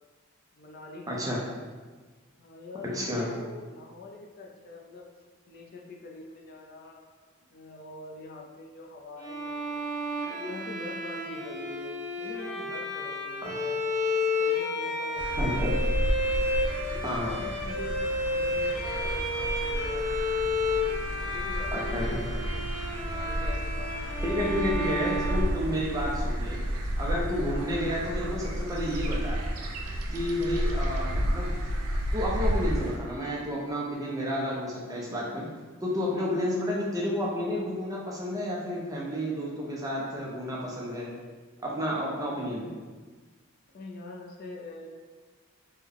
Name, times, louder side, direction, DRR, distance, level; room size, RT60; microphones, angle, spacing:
voice 1, 0.5-1.2 2.4-5.1 5.5-7.0 7.5-9.8 10.2-15.7 16.2-20.1 20.6-22.5 23.0-24.5 26.1-26.5 27.3-27.6 35.5-35.6 36.2-36.5 43.7-44.9, left 2 dB, 45° left, 0 dB, 0.4 m, -44 dB
voice 2, 1.1-1.4 2.9-3.3 15.4-15.7 17.0-17.3 21.7-22.2 24.2-26.6 27.0-29.4 30.1-31.5 32.1-35.5 35.8-41.1 41.6-42.7, equal, 15° right, -4 dB, 0.5 m, -31 dB
Bowed string instrument, 9.2-26.2, left 2 dB, 45° right, 1.2 m, -31 dB
sound 1, 15.2-33.0, equal, 75° right, 0.5 m, -31 dB
3.4 x 2.2 x 3.5 m, 1.4 s
head